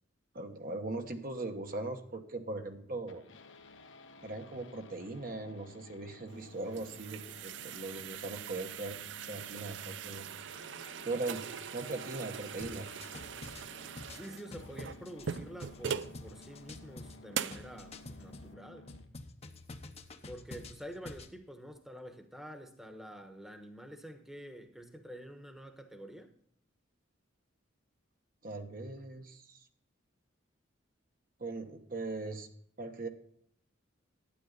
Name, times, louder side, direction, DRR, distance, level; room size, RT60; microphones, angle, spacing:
voice 1, 0.3-3.3 4.2-9.0 9.3-10.3 11.0-11.4 11.7-12.9 28.4-29.6 31.4-32.5 32.8-33.1, right 2 dB, 45° right, 5 dB, 1.0 m, -39 dB
sound 1, 3.1-19.1, left 2 dB, 70° left, 1.1 m, -55 dB
sound 2, 6.3-16.2 16.7-16.8 17.3-17.7, right 8 dB, 65° right, 0.5 m, -42 dB
sound 3, 12.6-18.5 18.9-21.3, left 2 dB, 30° left, 0.9 m, -48 dB
voice 2, 14.1-18.9 20.3-26.3, equal, ahead, 6 dB, 1.1 m, -48 dB
12.0 x 9.3 x 3.9 m, 0.69 s
head